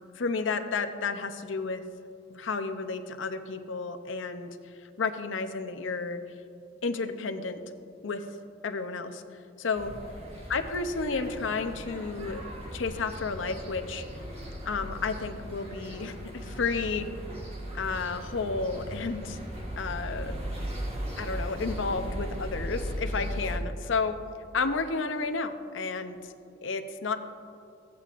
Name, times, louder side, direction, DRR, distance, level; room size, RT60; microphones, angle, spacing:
voice 1, 0.1-1.8 2.3-4.5 5.0-6.2 6.8-7.6 8.0-8.3 8.6-9.2 9.6-9.9 10.5-12.4 12.7-14.0 14.7-17.1 17.7-19.4 19.8-20.3 21.2-24.2 24.5-26.3 26.6-27.2, left 4 dB, 85° left, 8 dB, 0.6 m, -31 dB
sound 1, 9.7-23.6, equal, 35° right, 1.5 m, -37 dB
14.5 x 8.5 x 2.5 m, 2.6 s
head